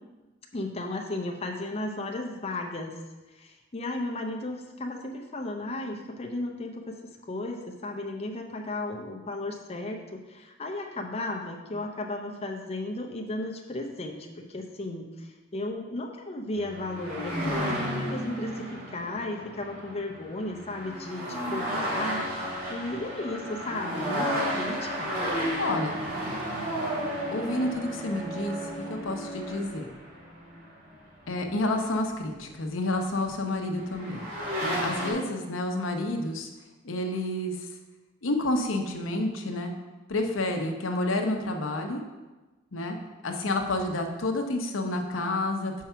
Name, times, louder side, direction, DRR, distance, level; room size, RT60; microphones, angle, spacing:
voice 1, 0.5-2.9 3.3-7.0 7.3-25.2, left 2 dB, 30° left, 1 dB, 0.6 m, -35 dB
sound 1, 16.6-31.9 33.3-33.4 33.8-35.1, equal, 55° right, 2.5 m, -33 dB
voice 2, 25.6-26.1 27.3-29.9 31.3-34.3 34.6-36.5 36.8-37.5 38.2-39.7 40.1-42.0 42.7-43.0 43.2-45.8, left 2 dB, 90° left, 4 dB, 0.8 m, -29 dB
5.8 x 4.7 x 5.6 m, 1.2 s
head